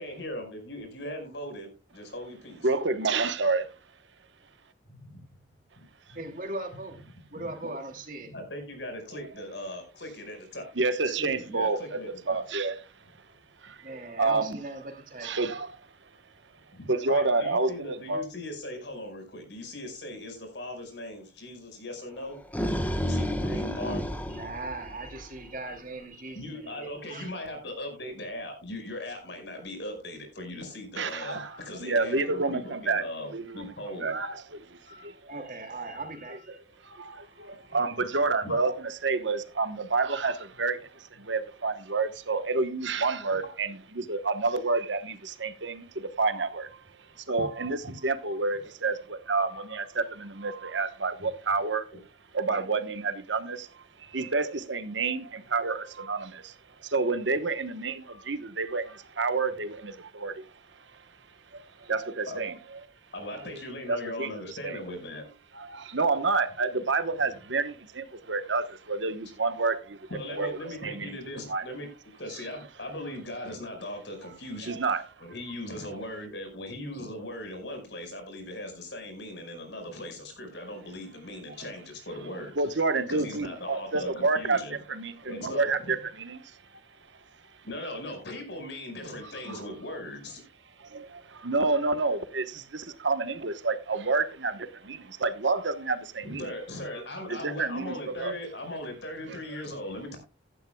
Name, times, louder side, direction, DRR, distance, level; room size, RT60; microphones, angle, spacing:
voice 1, 0.0-2.6 4.9-5.0 5.8-5.9 6.1-6.2 7.4-7.5 8.3-10.7 11.2-12.4 16.7-22.4 23.0-24.0 26.3-34.1 37.0-38.0 38.4-38.6 47.8-47.9 51.9-52.0 62.3-62.4 63.1-65.2 70.1-71.9 72.2-74.8 75.2-82.5 83.1-84.8 85.2-85.9 87.6-90.4 96.2-100.2, left 1 dB, 70° left, 5.1 m, -39 dB
voice 2, 2.6-3.6 10.8-11.8 12.3-12.7 13.6-13.8 14.2-14.6 15.2-15.7 16.9-18.2 31.0-33.0 33.3-33.6 34.0-34.8 36.8-46.8 47.3-51.9 52.3-56.5 56.8-60.5 61.5-62.5 63.5-63.6 63.9-64.8 65.5-70.0 70.3-71.2 71.5-71.6 74.7-75.0 82.6-84.6 84.9-86.5 89.2-89.6 90.8-96.5 97.3-98.3, right 3 dB, 75° right, 1.2 m, -29 dB
voice 3, 6.1-7.0 7.3-8.3 13.8-15.4 24.2-27.4 31.4-31.9 32.6-32.9 34.8-36.6, right 2 dB, 45° right, 2.6 m, -40 dB
sound 1, 22.2-25.4, equal, 10° left, 1.4 m, -30 dB
16.0 x 11.5 x 2.3 m
head